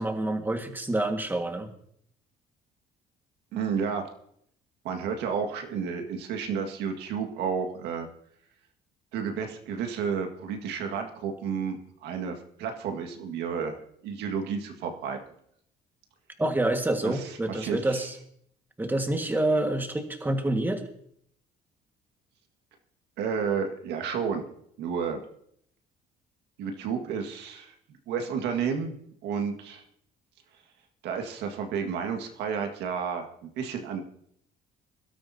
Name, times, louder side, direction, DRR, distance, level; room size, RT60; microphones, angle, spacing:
voice 1, 0.0-1.7 16.4-18.2 18.8-20.8, right 1 dB, 10° right, 5 dB, 1.7 m, -27 dB
voice 2, 3.5-4.1 4.8-8.1 9.1-15.2 17.0-18.0 23.2-24.4 24.8-25.2 26.6-27.7 28.1-28.9 29.2-29.8 31.0-34.0, right 6 dB, 85° right, 4 dB, 1.9 m, -31 dB
22.5 x 12.5 x 2.8 m, 0.68 s
cardioid pair, 110°, 17 cm